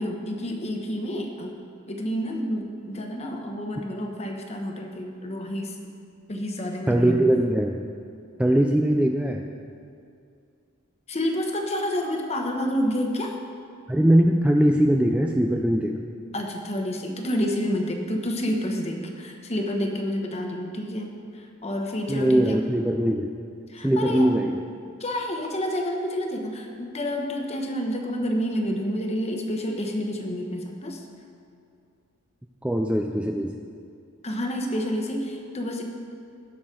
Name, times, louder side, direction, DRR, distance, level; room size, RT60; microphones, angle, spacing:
voice 1, 0.0-1.5 1.9-5.8 6.3-7.2 11.1-13.4 16.3-22.6 23.7-24.3 25.0-31.0 34.2-35.8, equal, 30° left, 2 dB, 1.0 m, -29 dB
voice 2, 6.9-7.8 8.4-9.5 13.9-16.0 22.1-23.3 23.8-24.6 32.6-33.5, right 1 dB, 5° right, 2 dB, 0.3 m, -21 dB
18.0 x 6.1 x 3.8 m, 2.4 s
head